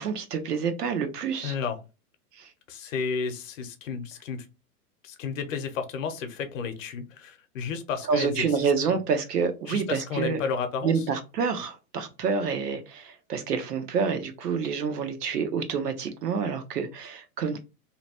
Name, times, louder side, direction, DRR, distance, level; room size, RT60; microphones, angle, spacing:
voice 1, 0.0-1.5 2.3-2.5 8.1-10.4 10.8-17.6, right 5 dB, 80° right, 0.9 m, -28 dB
voice 2, 1.4-1.8 2.7-4.5 5.0-8.5 8.9-9.0 9.7-10.9, left 5 dB, 55° left, 0.8 m, -32 dB
2.9 x 2.2 x 2.8 m
hypercardioid pair, 135°, 47 cm